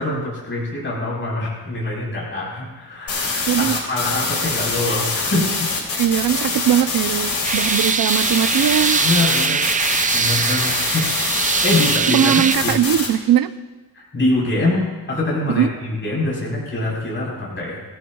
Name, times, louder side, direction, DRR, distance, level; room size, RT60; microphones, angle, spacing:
voice 1, 0.0-5.7 9.0-9.6 10.1-11.0 11.4-12.7 13.9-17.8, left 2 dB, 30° left, -5 dB, 4.5 m, -24 dB
sound 1, 3.1-12.0 12.5-13.1, left 3 dB, 55° left, 4.6 m, -24 dB
voice 2, 3.5-3.8 6.0-9.0 12.1-13.5 15.6-15.7, right 10 dB, 60° right, 10 dB, 0.8 m, -19 dB
sound 2, 7.4-12.6, right 5 dB, 20° right, 0.3 m, -21 dB
25.0 x 15.5 x 2.4 m, 1.2 s
wide cardioid pair, 140°, 39 cm